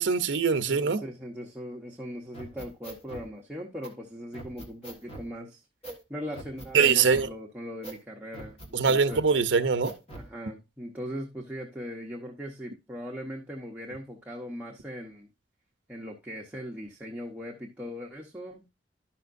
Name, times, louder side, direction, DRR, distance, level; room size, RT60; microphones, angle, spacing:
voice 1, 0.0-1.0 6.7-7.3 8.7-9.9, right 5 dB, 80° right, 0.7 m, -23 dB
voice 2, 0.7-5.6 6.1-9.2 10.2-15.3 15.9-18.6, equal, 10° right, 0.9 m, -39 dB
sound 1, 2.3-3.3 3.8-3.9 4.3-5.3 5.8-6.0 6.3-7.3 7.8-8.0 8.3-9.3 9.8-10.3, right 2 dB, 35° left, 1.5 m, -42 dB
11.5 x 5.7 x 2.6 m
head